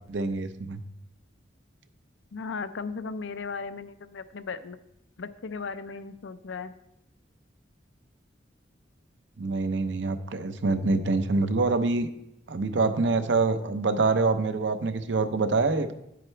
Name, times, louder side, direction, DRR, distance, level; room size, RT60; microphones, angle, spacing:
voice 1, 0.1-0.8 9.4-12.1 12.5-15.9, right 3 dB, 75° right, 10 dB, 0.6 m, -25 dB
voice 2, 2.3-4.8 5.2-6.7, left 4 dB, 85° left, 12 dB, 0.5 m, -36 dB
10.0 x 7.8 x 3.3 m, 0.83 s
head